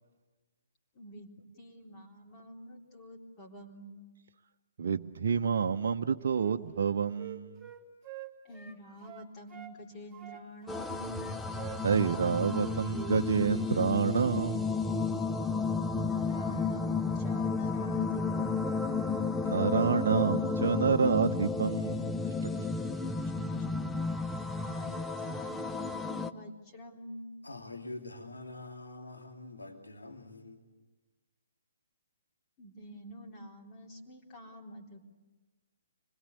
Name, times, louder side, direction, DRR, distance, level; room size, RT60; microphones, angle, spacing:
voice 1, 0.9-4.0 8.4-11.3 16.0-18.8 23.2-23.7 24.6-27.4 32.6-35.0, equal, 25° left, 3.7 m, -48 dB
voice 2, 4.8-7.7 11.8-14.8 19.4-22.2, right 6 dB, 60° right, 0.9 m, -28 dB
Wind instrument woodwind instrument, 6.3-9.8 10.1-13.2 13.5-13.7, right 13 dB, 15° right, 3.4 m, -47 dB
sound 1, 10.7-26.3, left 4 dB, 10° left, 0.8 m, -32 dB
voice 3, 27.4-30.6, left 2 dB, 85° left, 2.8 m, -45 dB
26.0 x 21.0 x 8.5 m
figure-of-eight pair, 135°, 0 cm